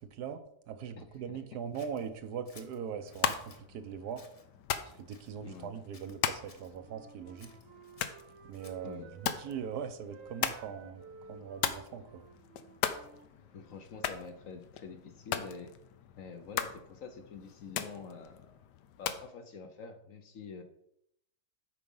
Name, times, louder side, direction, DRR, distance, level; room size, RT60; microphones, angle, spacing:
voice 1, 0.1-4.2 4.9-7.5 8.5-11.0 11.3-12.2, right 7 dB, 75° right, 9 dB, 1.3 m, -41 dB
voice 2, 1.0-1.4 5.4-5.8 8.8-9.4 13.5-15.7 16.1-18.5 19.0-20.6, left 5 dB, 55° left, 7 dB, 1.2 m, -47 dB
Scissors, 1.7-3.6 4.1-4.5 5.1-5.7 5.9-6.7 7.4-8.9, left 4 dB, 35° left, 0.5 m, -58 dB
sound 1, 3.0-19.3, left 9 dB, 90° left, 1.3 m, -39 dB
Wind instrument woodwind instrument, 6.4-9.7 10.0-13.8, right 4 dB, 55° right, 1.2 m, -55 dB
8.5 x 4.9 x 5.4 m, 0.75 s
omnidirectional pair, 1.8 m